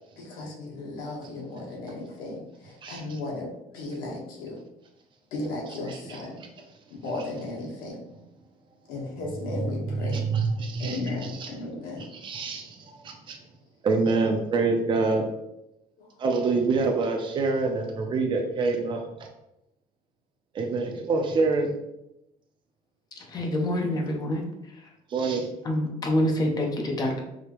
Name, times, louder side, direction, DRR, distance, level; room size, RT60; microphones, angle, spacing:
voice 1, 0.2-4.6 5.3-6.4 6.9-8.0 8.9-10.3 10.8-12.1 16.0-16.1, left 2 dB, 70° left, -2 dB, 1.4 m, -35 dB
voice 2, 10.0-11.5 12.1-13.4 13.8-15.3 16.2-19.3 20.5-21.7 25.1-25.5, right 3 dB, 30° right, 3 dB, 0.6 m, -26 dB
voice 3, 23.2-24.9 25.6-27.2, left 1 dB, 25° left, 2 dB, 0.7 m, -27 dB
4.9 x 2.8 x 3.0 m, 0.87 s
cardioid pair, 165°, 15 cm